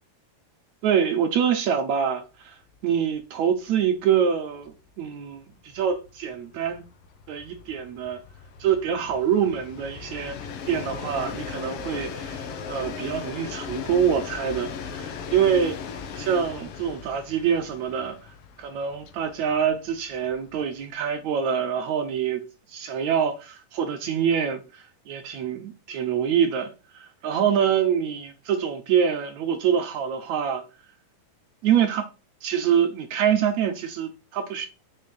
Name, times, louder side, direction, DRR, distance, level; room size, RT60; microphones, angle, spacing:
voice 1, 0.8-2.6 2.8-5.4 5.7-6.8 7.3-8.2 8.6-10.4 10.6-15.8 16.2-18.2 18.6-30.6 31.6-32.1 32.4-34.7, right 8 dB, 65° right, 2.1 m, -25 dB
Train, 2.7-2.8 3.2-3.3 3.5-21.0, left 6 dB, 65° left, 1.5 m, -38 dB
6.5 x 5.5 x 6.4 m
omnidirectional pair, 3.9 m